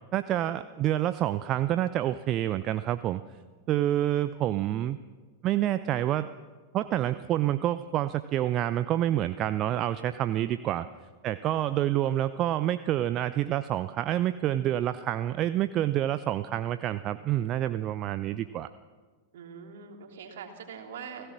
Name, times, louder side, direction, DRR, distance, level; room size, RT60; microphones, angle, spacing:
voice 1, 0.1-3.2 3.7-5.0 5.4-6.3 6.7-10.9 11.2-18.7, right 12 dB, 35° right, 13 dB, 0.6 m, -28 dB
voice 2, 10.0-10.3 19.3-21.3, right 6 dB, 60° right, 3 dB, 3.2 m, -44 dB
29.0 x 17.0 x 6.1 m, 1.4 s
figure-of-eight pair, 90°, 0 cm